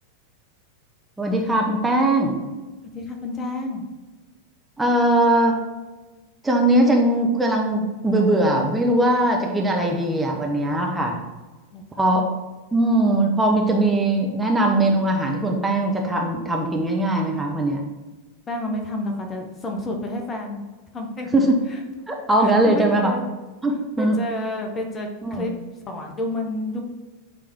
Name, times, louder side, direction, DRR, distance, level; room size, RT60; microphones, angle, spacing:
voice 1, 1.2-2.4 4.8-5.6 6.4-11.2 12.0-12.2 12.7-17.8 21.3-21.6 22.1-23.1 23.6-24.2 25.2-25.5, right 1 dB, 10° right, 0 dB, 0.9 m, -20 dB
voice 2, 2.9-3.8 11.7-12.2 18.5-20.6 20.9-21.3 21.7-21.8 22.4-23.3 24.0-25.5 25.9-26.8, left 1 dB, 20° left, 3 dB, 0.9 m, -30 dB
8.4 x 3.5 x 3.6 m, 1.2 s
figure-of-eight pair, 90°, 0 cm